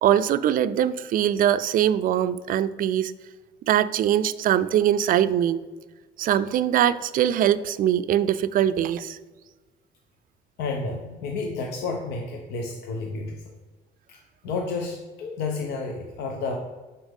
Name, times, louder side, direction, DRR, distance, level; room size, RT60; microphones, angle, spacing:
voice 1, 0.0-3.1 3.7-5.6 6.2-9.2, right 10 dB, 55° right, 14 dB, 0.4 m, -22 dB
voice 2, 10.6-13.4 14.1-14.2 14.4-16.5, left 3 dB, 80° left, 1 dB, 0.9 m, -31 dB
7.2 x 5.7 x 3.6 m, 1.3 s
cardioid pair, 110°, 17 cm